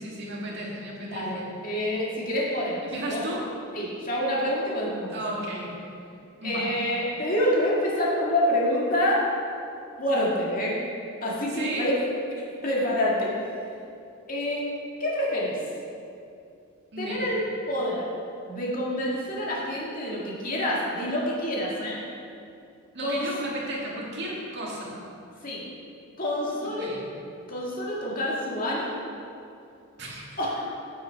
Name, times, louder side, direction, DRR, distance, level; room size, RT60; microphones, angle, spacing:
voice 1, 0.0-1.5 2.9-3.5 5.1-5.7 6.4-6.7 11.5-11.9 16.9-17.4 22.9-25.0 26.6-27.0 30.0-30.4, right 1 dB, 55° right, -4 dB, 2.1 m, -34 dB
voice 2, 1.0-3.2 3.7-5.2 6.4-9.2 10.0-10.7 11.2-12.0 12.6-13.3 14.3-14.6 15.0-15.5 17.0-17.4 17.7-18.0 18.5-22.0 23.0-23.3 25.4-25.6 26.2-26.9 27.5-29.0 30.4-30.7, left 1 dB, 40° left, -5 dB, 2.0 m, -27 dB
9.1 x 7.8 x 4.6 m, 2.6 s
head